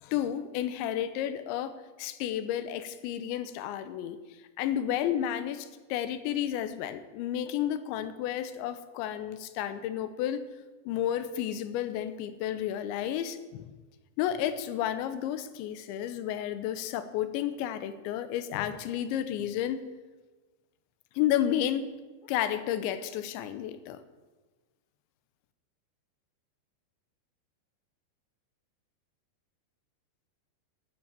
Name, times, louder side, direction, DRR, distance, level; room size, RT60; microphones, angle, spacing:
voice 1, 0.0-1.7 2.0-4.2 4.6-10.5 10.9-13.8 14.2-19.9 21.2-21.9 22.3-24.0, left 11 dB, 85° left, 11 dB, 3.1 m, -31 dB
12.5 x 11.0 x 8.9 m, 1.2 s
omnidirectional pair, 5.3 m